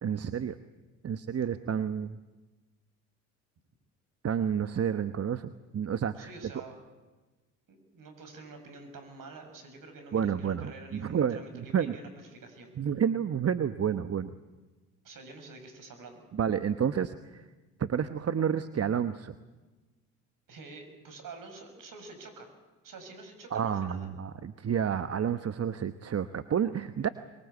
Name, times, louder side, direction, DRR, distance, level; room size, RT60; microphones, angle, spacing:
voice 1, 0.0-0.6 1.0-2.2 4.2-6.3 10.1-11.4 11.7-11.9 12.8-14.3 16.3-17.4 17.8-19.3 23.5-27.1, right 8 dB, 35° right, 11 dB, 1.1 m, -30 dB
voice 2, 6.1-6.8 7.7-12.7 15.0-16.3 20.5-22.5 22.8-24.1, right 3 dB, 55° right, 7 dB, 6.9 m, -47 dB
23.5 x 22.5 x 8.3 m, 1.2 s
hypercardioid pair, 55°, 40 cm